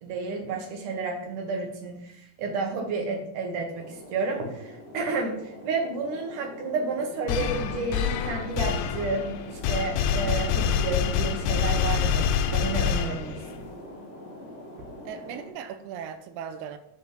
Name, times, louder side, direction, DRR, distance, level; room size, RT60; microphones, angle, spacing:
voice 1, 0.0-13.7, right 3 dB, 65° right, 2.7 m, -31 dB
sound 1, 3.7-15.5, left 1 dB, 40° left, 3.4 m, -44 dB
sound 2, 7.3-13.6, left 8 dB, 90° left, 2.6 m, -26 dB
voice 2, 15.1-16.8, right 8 dB, 90° right, 1.7 m, -38 dB
9.8 x 4.2 x 5.3 m
omnidirectional pair, 4.2 m